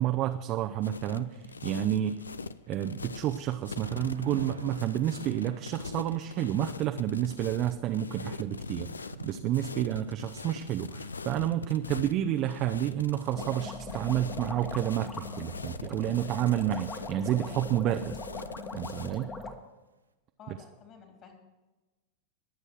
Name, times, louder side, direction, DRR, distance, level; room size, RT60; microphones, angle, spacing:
voice 1, 0.0-2.2 2.7-18.2 18.7-19.3 20.5-20.6, right 12 dB, 35° right, 6 dB, 0.7 m, -30 dB
sound 1, 0.8-19.2, left 4 dB, 75° left, 0.5 m, -42 dB
Thunder / Rain, 3.8-19.8, right 4 dB, 80° right, 1.2 m, -51 dB
sound 2, 13.3-19.5, left 3 dB, 20° left, 1.6 m, -41 dB
voice 2, 20.4-21.3, left 6 dB, 35° left, 3 dB, 3.8 m, -51 dB
21.5 x 8.3 x 4.7 m, 1.1 s
figure-of-eight pair, 90°, 0 cm